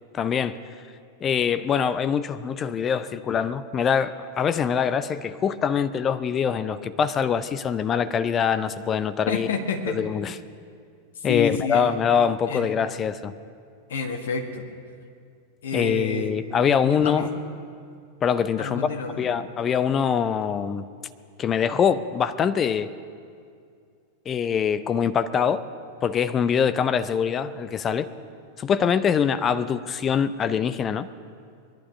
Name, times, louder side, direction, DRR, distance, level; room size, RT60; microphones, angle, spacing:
voice 1, 0.1-0.6 1.2-9.5 9.9-10.4 11.2-13.3 15.7-17.3 18.2-18.8 19.2-20.8 21.4-22.9 24.3-25.6 26.0-28.1 28.6-31.1, left 7 dB, 25° left, 13 dB, 0.6 m, -24 dB
voice 2, 9.3-9.9 11.2-11.9 12.5-12.7 13.9-14.6 15.6-16.3 16.6-17.3 18.6-19.3, left 5 dB, 60° left, 4 dB, 1.6 m, -29 dB
21.0 x 11.0 x 5.4 m, 2.3 s
figure-of-eight pair, 90°, 0 cm